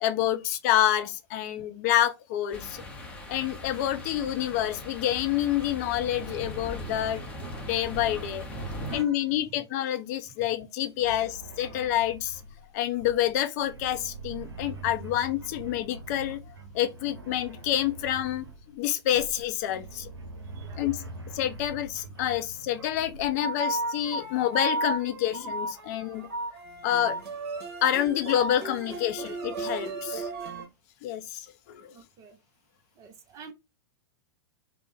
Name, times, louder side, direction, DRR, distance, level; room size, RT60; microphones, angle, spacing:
voice 1, 0.0-2.8 3.3-7.2 7.6-8.4 8.9-12.4 12.7-16.4 16.7-18.4 18.7-20.1 20.8-21.0 21.3-26.3 26.8-27.2 27.8-30.3 31.0-31.5 31.7-31.9, left 12 dB, 40° left, 0.5 m, -28 dB
sound 1, 2.5-9.0, equal, 10° left, 0.7 m, -39 dB
voice 2, 8.9-9.6 11.0-11.2 20.5-20.9 24.2-24.3 25.8-26.0 31.9-32.4 33.0-33.5, right 6 dB, 25° right, 0.5 m, -50 dB
sound 2, 11.0-23.5, right 3 dB, 70° right, 0.7 m, -44 dB
sound 3, 23.4-30.6, right 2 dB, 45° right, 1.2 m, -33 dB
3.2 x 2.0 x 3.0 m
figure-of-eight pair, 100°, 13 cm